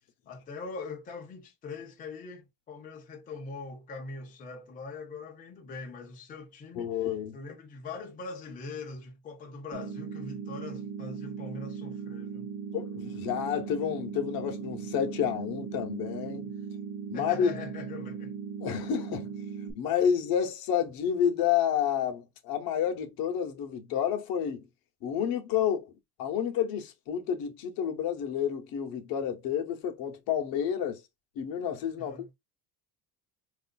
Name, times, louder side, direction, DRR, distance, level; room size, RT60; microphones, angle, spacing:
voice 1, 0.3-7.0 7.3-12.5 16.5-16.6 17.1-18.4 32.0-32.3, left 4 dB, 20° left, 0.6 m, -42 dB
voice 2, 6.8-7.4 12.7-16.5 17.1-17.5 18.6-19.3 19.7-24.7 25.0-25.9 26.2-31.0 31.4-32.2, left 8 dB, 60° left, 0.8 m, -30 dB
sound 1, 9.7-19.7, right 6 dB, 30° right, 0.7 m, -38 dB
4.8 x 2.5 x 2.2 m
cardioid pair, 175°, 40 cm